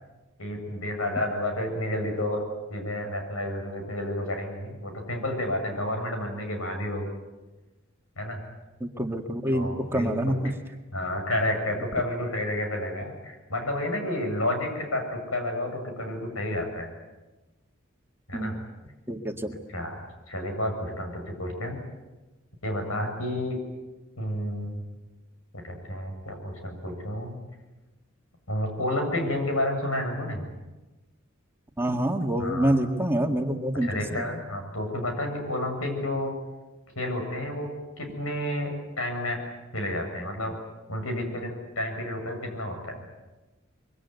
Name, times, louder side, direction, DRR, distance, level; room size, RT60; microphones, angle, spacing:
voice 1, 0.4-2.4 2.7-7.1 8.2-8.4 9.5-10.4 10.9-16.9 18.3-18.6 19.7-19.9 20.3-21.8 22.6-23.6 24.2-24.8 25.5-27.4 28.5-30.4 32.4-32.7 33.8-36.3 37.0-37.7 38.0-39.4 39.7-40.5 40.9-43.1, left 1 dB, 85° left, 4 dB, 7.6 m, -30 dB
voice 2, 8.8-10.5 18.3-18.5 19.1-19.5 31.8-34.3, right 1 dB, 10° right, 4 dB, 1.8 m, -26 dB
25.0 x 23.5 x 9.4 m, 1.1 s
head